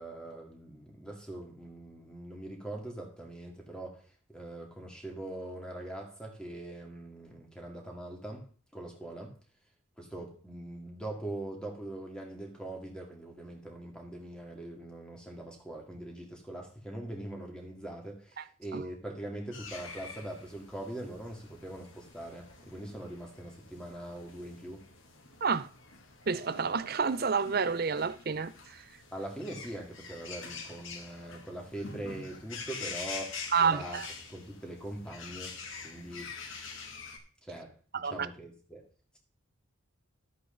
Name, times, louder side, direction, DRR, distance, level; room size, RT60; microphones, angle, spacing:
voice 1, 0.0-8.4 8.7-9.3 10.0-24.8 29.1-34.0 34.3-35.6 35.8-36.3 37.4-38.8, right 1 dB, 5° left, 2.2 m, -42 dB
sound 1, 19.5-37.2, left 4 dB, 65° left, 2.3 m, -46 dB
voice 2, 26.3-28.5 33.5-34.1 37.9-38.3, right 5 dB, 45° right, 0.6 m, -29 dB
12.5 x 8.3 x 3.9 m
head